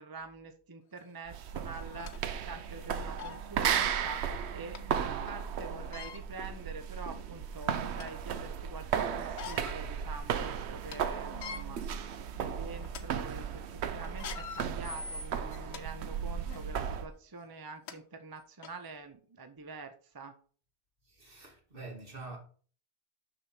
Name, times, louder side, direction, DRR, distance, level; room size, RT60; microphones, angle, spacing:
voice 1, 0.0-20.3, right 3 dB, 25° right, 0.5 m, -46 dB
sound 1, 1.0-1.1 1.7-2.2 2.8-2.9 3.2-3.4 4.7-4.8 5.8-6.2 7.0-7.1 7.5-8.2 9.2-9.8 10.2-10.3 10.7-11.0 11.3-11.6 12.2-12.4 12.8-13.0 14.0-15.8 16.4-16.6 17.5-17.6 17.9-18.0 18.6-18.7, left 6 dB, 70° left, 1.0 m, -43 dB
sound 2, 1.3-17.1, right 8 dB, 70° right, 0.9 m, -35 dB
voice 2, 21.1-22.4, right 3 dB, 50° right, 2.2 m, -46 dB
6.5 x 6.1 x 4.3 m
omnidirectional pair, 1.2 m